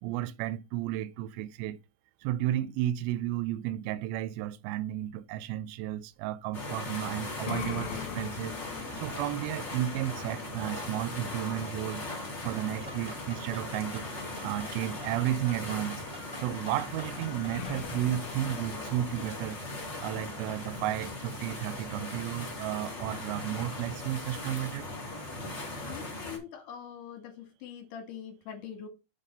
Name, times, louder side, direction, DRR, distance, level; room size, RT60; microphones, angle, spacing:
voice 1, 0.0-1.8 2.2-12.1 12.4-14.1 14.4-16.0 16.4-19.6 20.0-24.9, right 13 dB, 85° right, 2.1 m, -33 dB
sound 1, 6.5-26.4, left 2 dB, 40° left, 1.0 m, -39 dB
sound 2, 7.0-13.7 17.0-17.1 17.5-21.9, left 10 dB, 85° left, 2.4 m, -44 dB
sound 3, 12.7-17.8, equal, 20° right, 1.1 m, -47 dB
voice 2, 25.9-28.9, left 8 dB, 60° left, 2.8 m, -43 dB
7.0 x 3.7 x 5.2 m
omnidirectional pair, 4.8 m